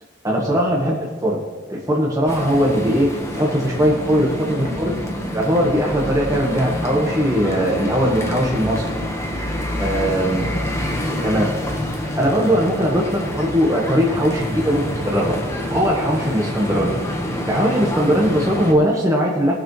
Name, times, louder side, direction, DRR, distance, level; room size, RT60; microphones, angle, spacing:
voice 1, 0.2-1.4 1.7-5.0 5.3-8.9 9.8-10.4 11.1-11.6 12.1-15.3 15.7-17.0 17.4-19.6, equal, 20° right, -3 dB, 1.4 m, -20 dB
sound 1, 2.3-18.7, left 1 dB, 15° left, 1.3 m, -27 dB
19.5 x 7.0 x 3.2 m, 1.4 s
head